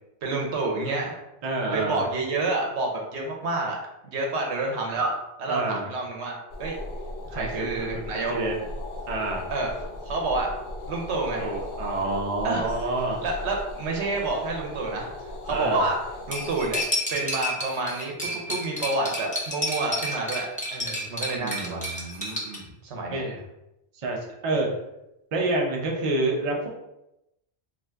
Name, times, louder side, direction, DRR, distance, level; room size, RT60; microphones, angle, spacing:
voice 1, 0.2-1.1 1.7-3.8 4.0-5.1 5.4-6.3 6.6-6.8 7.3-8.3 9.5-10.5 10.9-11.5 12.4-12.7 13.2-15.1 15.4-16.0 16.3-16.8 17.1-21.9 22.8-23.2, right 2 dB, 75° right, 0 dB, 1.0 m, -28 dB
voice 2, 1.4-2.0 5.5-5.9 7.3-8.6 9.1-9.5 11.4-13.3 15.5-15.8 21.4-22.7 23.1-23.4 23.9-24.7 25.3-26.7, right 2 dB, 45° right, -1 dB, 0.4 m, -28 dB
sound 1, 6.5-16.8, left 2 dB, 65° left, 0.7 m, -37 dB
Cutlery silverware, 16.3-22.6, equal, 10° left, 0.4 m, -31 dB
2.5 x 2.4 x 3.3 m, 0.87 s
omnidirectional pair, 1.2 m